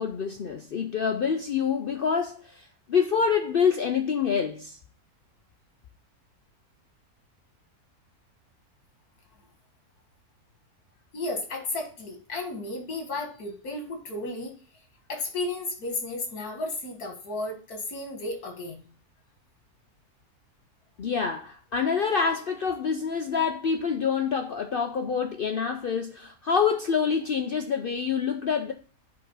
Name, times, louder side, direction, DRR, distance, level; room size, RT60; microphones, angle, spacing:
voice 1, 0.0-4.8 21.0-28.7, left 6 dB, 65° left, 0.5 m, -26 dB
voice 2, 11.1-14.6 15.1-18.8, left 2 dB, 85° left, 2.2 m, -33 dB
7.7 x 3.8 x 5.3 m
omnidirectional pair, 1.6 m